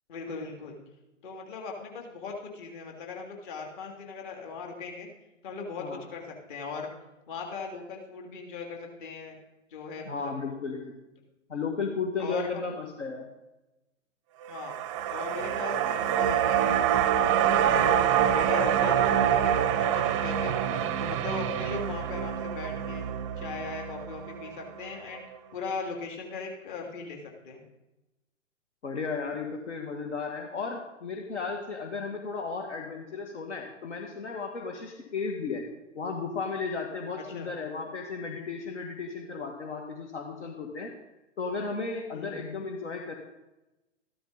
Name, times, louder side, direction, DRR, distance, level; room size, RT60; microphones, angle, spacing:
voice 1, 0.1-0.8 1.2-5.1 5.4-6.9 7.3-9.4 9.7-10.4 12.2-12.7 14.5-14.8 15.1-23.0 23.4-25.2 25.5-27.2 27.4-27.6 37.3-37.5 42.1-42.4, left 4 dB, 40° left, 1 dB, 3.0 m, -39 dB
voice 2, 10.1-11.0 11.5-13.3 28.8-35.6 35.9-40.9 41.4-43.2, left 4 dB, 65° left, 2 dB, 2.0 m, -34 dB
sound 1, 14.5-24.9 25.2-25.3, right 10 dB, 25° right, 0.6 m, -26 dB
14.0 x 12.5 x 4.1 m, 0.99 s
figure-of-eight pair, 120°, 38 cm